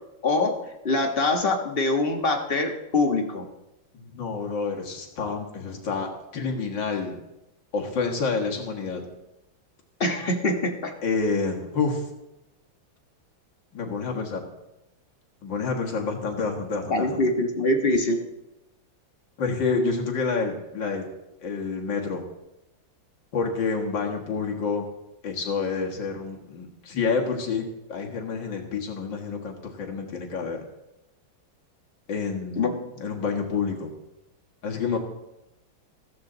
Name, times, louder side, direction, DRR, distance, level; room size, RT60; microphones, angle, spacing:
voice 1, 0.2-0.6 0.8-3.4 10.0-10.9 16.9-18.2 32.6-32.8, left 2 dB, 30° left, 3 dB, 1.4 m, -24 dB
voice 2, 3.9-7.2 7.7-9.0 11.0-12.0 13.7-14.5 15.4-17.2 19.4-21.1 21.4-22.2 23.3-24.9 25.2-30.6 32.1-32.7 33.0-33.9 34.6-35.0, left 4 dB, 65° left, 2 dB, 2.4 m, -28 dB
14.5 x 14.5 x 4.0 m, 0.93 s
omnidirectional pair, 2.1 m